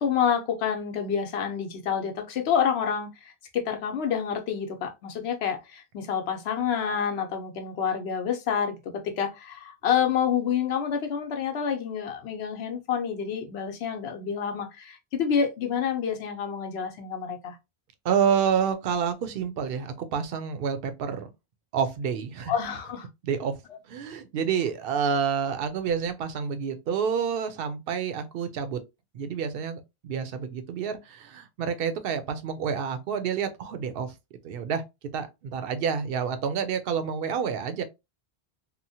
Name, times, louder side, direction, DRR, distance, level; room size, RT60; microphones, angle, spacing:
voice 1, 0.0-17.6 22.5-23.1, left 7 dB, 90° left, 0.9 m, -28 dB
voice 2, 18.0-21.3 21.7-22.5 23.2-23.5 23.9-28.8 29.1-34.1 34.4-34.8 35.1-37.8, right 7 dB, 65° right, 0.8 m, -28 dB
2.9 x 2.1 x 2.6 m
omnidirectional pair, 1.1 m